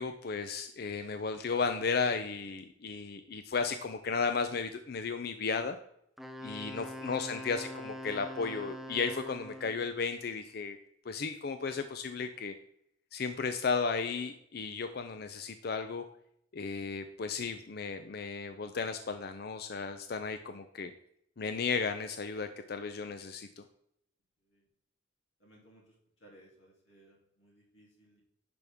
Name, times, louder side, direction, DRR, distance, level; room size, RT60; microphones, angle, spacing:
voice 1, 0.0-5.8 6.4-10.8 11.1-12.5 13.1-16.0 16.5-20.9 21.4-23.6, left 5 dB, 55° left, 8 dB, 0.5 m, -34 dB
Wind instrument woodwind instrument, 6.2-9.9, equal, ahead, 0.5 m, -43 dB
voice 2, 25.4-28.2, left 1 dB, 85° left, -2 dB, 3.1 m, -60 dB
10.5 x 5.3 x 3.5 m, 0.73 s
head